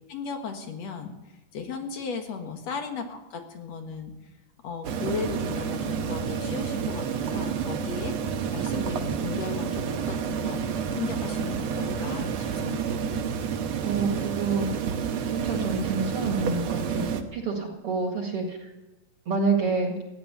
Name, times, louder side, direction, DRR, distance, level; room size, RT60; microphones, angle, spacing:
voice 1, 0.1-1.1 1.5-4.1 4.6-8.2 8.5-10.6 10.9-13.0, left 5 dB, 55° left, 5 dB, 2.4 m, -36 dB
sound 1, 4.8-17.2, right 7 dB, 65° right, 1.8 m, -29 dB
voice 2, 13.8-14.7 15.3-18.7 19.3-20.0, right 4 dB, 45° right, 2 dB, 2.5 m, -28 dB
16.0 x 10.0 x 8.1 m, 1.1 s
omnidirectional pair, 4.1 m